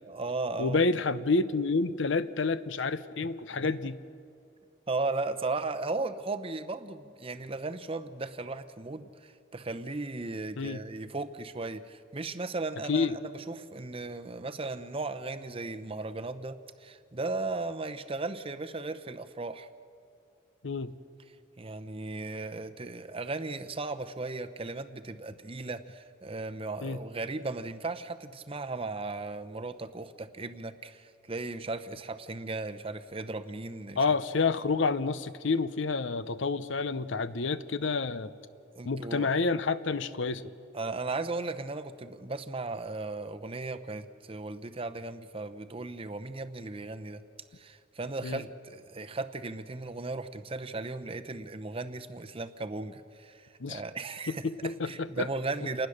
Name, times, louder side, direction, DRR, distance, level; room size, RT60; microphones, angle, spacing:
voice 1, 0.0-0.8 3.2-3.3 3.6-3.7 4.9-19.7 21.6-34.0 38.8-39.3 40.7-47.2 47.5-55.9, right 3 dB, 30° right, 9 dB, 0.8 m, -36 dB
voice 2, 0.6-3.9 10.6-10.8 12.9-13.2 20.6-20.9 26.8-27.0 34.0-38.3 38.8-40.5 48.2-48.4 53.6-53.8 54.3-55.3, left 4 dB, 65° left, 14 dB, 0.7 m, -29 dB
28.0 x 19.5 x 6.6 m, 2.5 s
head